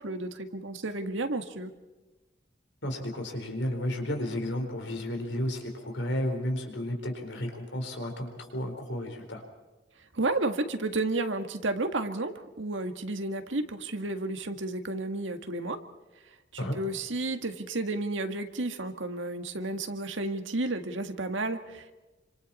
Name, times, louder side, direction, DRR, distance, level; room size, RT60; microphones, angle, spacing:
voice 1, 0.0-1.7 10.1-15.8 16.5-21.9, right 2 dB, 85° right, 7 dB, 1.9 m, -32 dB
voice 2, 2.8-9.4 16.6-16.8, left 1 dB, 70° left, 4 dB, 4.4 m, -32 dB
28.0 x 26.0 x 4.3 m, 1.1 s
head